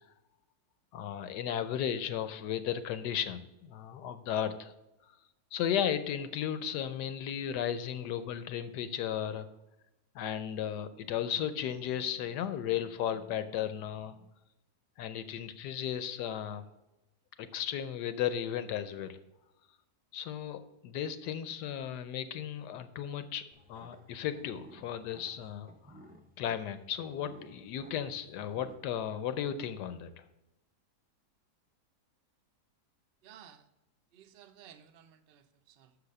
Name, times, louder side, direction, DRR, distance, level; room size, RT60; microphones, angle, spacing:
voice 1, 0.9-4.7 5.5-9.5 10.1-14.2 15.0-16.6 17.4-19.2 20.1-23.4 23.7-26.0 26.4-30.2, left 9 dB, 85° left, 12 dB, 1.2 m, -35 dB
sound 1, 23.5-28.8, equal, 10° right, 0.4 m, -56 dB
voice 2, 33.2-33.7 34.1-36.0, right 9 dB, 70° right, 8 dB, 0.5 m, -56 dB
6.7 x 4.9 x 6.5 m, 0.95 s
omnidirectional pair, 1.7 m